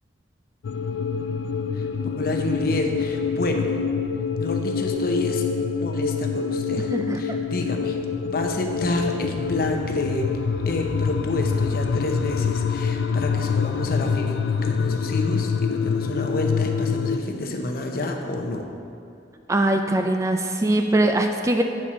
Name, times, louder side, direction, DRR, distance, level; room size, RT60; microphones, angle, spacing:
sound 1, 0.6-17.2, left 5 dB, 85° left, 0.3 m, -26 dB
voice 1, 2.2-3.7 4.4-5.4 5.8-8.0 8.2-10.3 10.6-18.6, left 2 dB, 55° left, 3 dB, 0.8 m, -29 dB
voice 2, 6.7-7.2 19.5-21.6, right 1 dB, 15° right, 5 dB, 0.3 m, -22 dB
8.2 x 4.3 x 6.1 m, 2.5 s
head